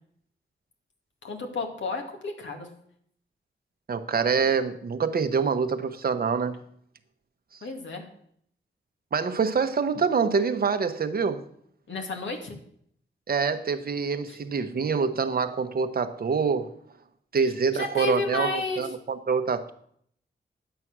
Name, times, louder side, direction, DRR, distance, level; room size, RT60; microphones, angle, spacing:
voice 1, 1.2-2.7 7.6-8.0 11.9-12.6 14.3-14.4 17.7-18.8, left 3 dB, 75° left, 3 dB, 2.3 m, -31 dB
voice 2, 3.9-6.5 9.1-11.4 13.3-16.7 17.3-19.7, right 5 dB, 50° right, 8 dB, 1.0 m, -25 dB
11.5 x 8.4 x 6.1 m, 0.67 s
wide cardioid pair, 140°, 19 cm